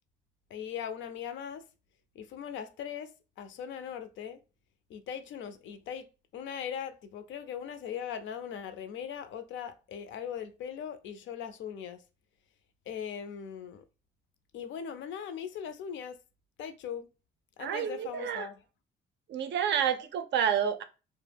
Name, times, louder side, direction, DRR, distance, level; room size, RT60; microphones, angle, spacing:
voice 1, 0.5-1.6 2.2-4.4 4.9-6.1 6.3-12.0 12.9-13.8 14.5-16.2 16.6-17.1 17.6-18.6, left 8 dB, 70° left, 0.4 m, -39 dB
voice 2, 17.6-18.5 19.3-20.8, right 8 dB, 60° right, 0.4 m, -29 dB
2.2 x 2.0 x 3.2 m
cardioid pair, 90°, 20 cm